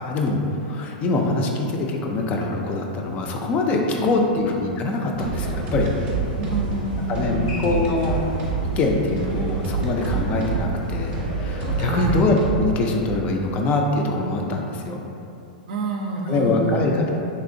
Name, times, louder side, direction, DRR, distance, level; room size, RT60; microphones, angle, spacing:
voice 1, 0.0-5.9 7.1-8.2 8.8-15.0 16.3-17.1, left 2 dB, 30° left, 1 dB, 0.3 m, -23 dB
voice 2, 4.0-4.4 6.4-7.7 11.8-12.3 15.7-17.0, right 1 dB, 70° right, 1 dB, 0.4 m, -28 dB
sound 1, 5.1-12.8, right 4 dB, 25° right, 0.6 m, -27 dB
sound 2, 5.4-12.0, left 1 dB, 80° left, 0.8 m, -37 dB
3.3 x 2.8 x 2.5 m, 2.7 s
hypercardioid pair, 135°, 5 cm